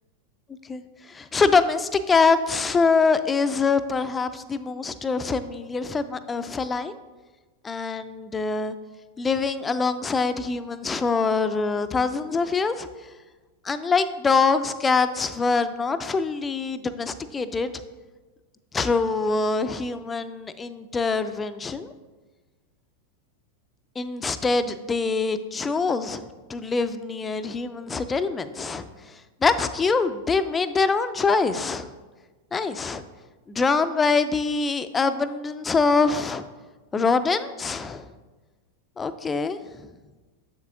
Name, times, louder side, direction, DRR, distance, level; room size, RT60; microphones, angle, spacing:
voice 1, 1.1-7.0 7.6-8.7 9.2-12.9 13.6-17.7 18.7-21.9 24.0-28.9 29.4-31.9 32.5-33.0 33.5-36.4 36.9-38.1 39.0-39.6, left 4 dB, 15° left, 12 dB, 0.3 m, -24 dB
7.3 x 7.2 x 2.5 m, 1.2 s
figure-of-eight pair, 90°, 0 cm